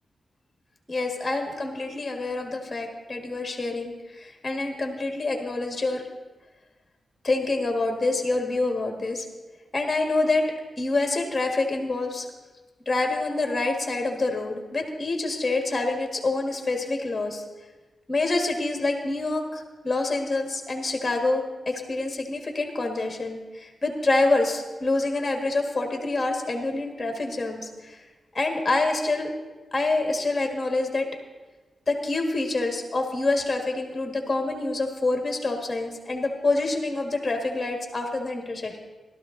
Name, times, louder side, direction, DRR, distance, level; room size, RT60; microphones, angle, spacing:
voice 1, 0.9-6.0 7.2-9.2 9.7-10.5 10.8-12.3 12.9-17.4 18.1-28.0 28.3-29.3 29.7-31.1 31.9-38.8, left 2 dB, 20° left, 3 dB, 1.8 m, -26 dB
16.5 x 12.5 x 3.9 m, 1.2 s
wide cardioid pair, 135°, 0 cm